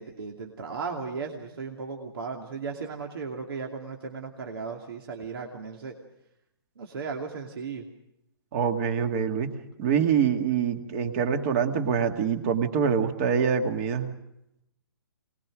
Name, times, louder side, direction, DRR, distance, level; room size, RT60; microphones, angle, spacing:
voice 1, 0.0-5.9 6.8-7.9, right 5 dB, 65° right, 1 dB, 2.7 m, -36 dB
voice 2, 8.5-9.5 9.8-14.1, right 7 dB, 30° right, 6 dB, 2.1 m, -25 dB
24.0 x 20.0 x 6.3 m, 0.83 s
hypercardioid pair, 155°, 13 cm